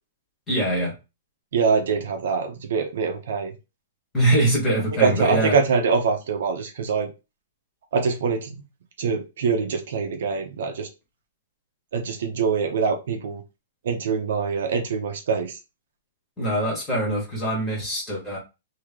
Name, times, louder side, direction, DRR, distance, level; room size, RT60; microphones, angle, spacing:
voice 1, 0.5-0.9 4.1-5.5 16.4-18.4, right 1 dB, 5° left, -4 dB, 1.5 m, -23 dB
voice 2, 1.5-3.5 5.0-7.1 7.9-8.5 9.0-10.9 11.9-13.4 13.8-15.6, right 5 dB, 55° right, 4 dB, 0.8 m, -24 dB
3.0 x 2.9 x 3.6 m, 0.27 s
hypercardioid pair, 180°, 0 cm